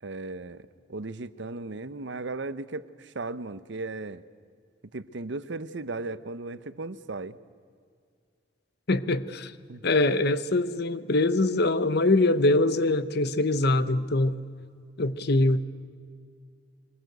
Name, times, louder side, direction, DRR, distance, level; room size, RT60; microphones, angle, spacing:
voice 1, 0.0-4.2 4.9-7.4 9.7-9.8, right 3 dB, 70° right, 14 dB, 0.8 m, -36 dB
voice 2, 8.9-9.5 9.8-14.4 15.0-15.6, left 2 dB, 60° left, 14 dB, 0.9 m, -23 dB
23.0 x 20.5 x 7.9 m, 2.2 s
head